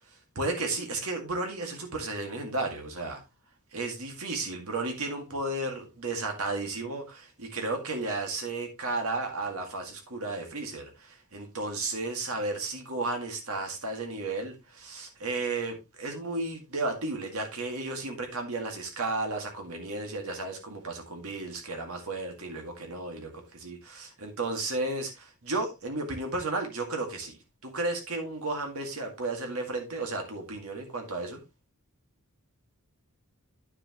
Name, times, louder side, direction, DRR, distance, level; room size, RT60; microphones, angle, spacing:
voice 1, 0.4-3.2 3.7-27.4 27.6-31.4, right 2 dB, 70° right, 2.0 m, -33 dB
9.8 x 6.8 x 3.0 m
head